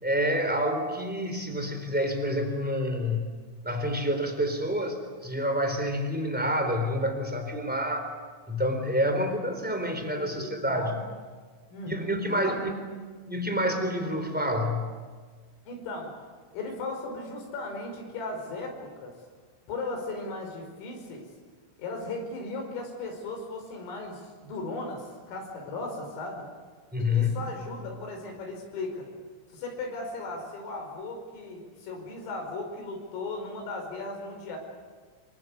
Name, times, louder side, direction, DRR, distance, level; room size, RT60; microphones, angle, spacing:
voice 1, 0.0-3.3 3.6-8.1 8.5-10.9 11.9-12.8 13.3-14.9 26.9-27.4, equal, ahead, 5 dB, 3.1 m, -28 dB
voice 2, 10.2-11.0 11.7-12.6 15.7-16.1 16.5-19.1 19.7-21.3 21.8-26.5 27.0-29.1 29.5-34.6, left 2 dB, 80° left, 3 dB, 7.7 m, -37 dB
26.5 x 24.5 x 8.4 m, 1.5 s
omnidirectional pair, 5.8 m